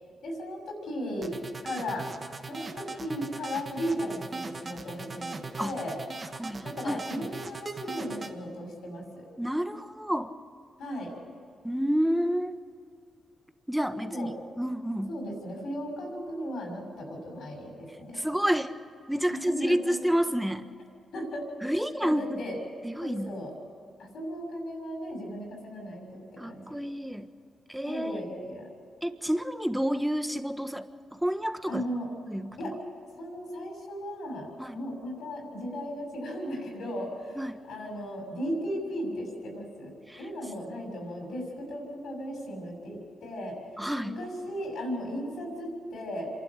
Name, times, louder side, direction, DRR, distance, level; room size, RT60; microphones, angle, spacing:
voice 1, 0.2-1.4 1.6-2.1 2.5-6.0 6.6-9.2 10.8-11.2 14.0-14.3 15.1-18.2 19.3-20.0 21.1-22.6 23.0-23.5 24.0-26.8 27.8-28.7 31.7-32.1 32.6-32.8 33.2-37.4 37.7-43.6 44.0-46.3, equal, 80° left, 0 dB, 6.5 m, -36 dB
sound 1, 1.2-8.3, right 3 dB, 40° right, 1.5 m, -39 dB
voice 2, 6.4-7.3 9.4-10.3 11.6-12.6 13.7-14.3 14.6-15.1 18.1-18.7 19.1-20.7 21.6-22.2 22.8-23.3 26.4-27.3 27.7-28.2 29.0-30.8 31.2-31.8 32.3-32.6 34.6-34.8 37.4-37.6 40.1-40.2 43.8-44.2, equal, 5° right, 9 dB, 1.4 m, -29 dB
27.0 x 12.0 x 8.3 m, 2.4 s
cardioid pair, 65°, 0 cm